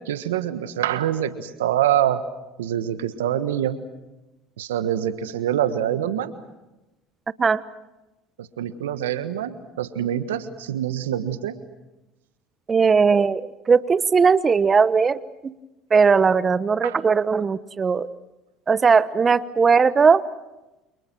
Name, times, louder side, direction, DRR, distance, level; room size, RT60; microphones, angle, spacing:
voice 1, 0.0-2.2 2.6-3.8 4.6-6.3 8.4-11.5 16.8-17.0, right 11 dB, 90° right, 11 dB, 1.4 m, -25 dB
voice 2, 12.7-15.5 15.9-18.1 18.7-20.2, right 5 dB, 30° right, 16 dB, 1.1 m, -18 dB
29.0 x 27.5 x 6.2 m, 1.0 s
hypercardioid pair, 75°, 0 cm